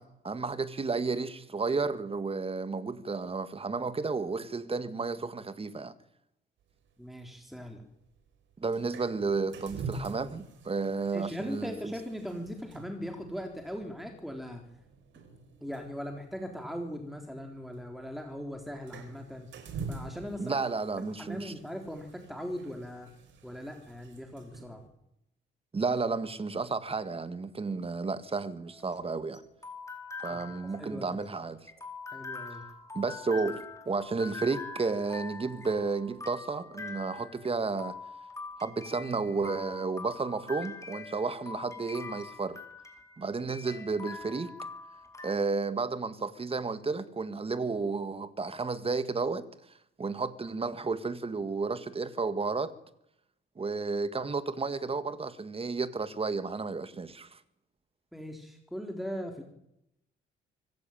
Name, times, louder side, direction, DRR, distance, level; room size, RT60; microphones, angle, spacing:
voice 1, 0.0-5.9 8.6-11.9 20.4-21.5 25.7-29.4 30.2-31.6 32.9-38.0 38.6-42.6 43.2-44.5 45.2-49.5 50.0-52.7 53.6-57.4, right 4 dB, 30° right, 1.9 m, -32 dB
sound 1, 6.6-24.9, right 4 dB, 70° right, 4.7 m, -47 dB
voice 2, 7.0-7.8 11.1-14.6 15.6-19.5 19.9-20.6 21.0-23.1 23.4-24.8 30.3-30.4 30.8-31.2 32.1-32.6 58.1-59.4, equal, ahead, 3.9 m, -39 dB
sound 2, 28.7-45.3, left 4 dB, 15° left, 4.2 m, -44 dB
25.0 x 15.0 x 9.2 m
cardioid pair, 90°, 20 cm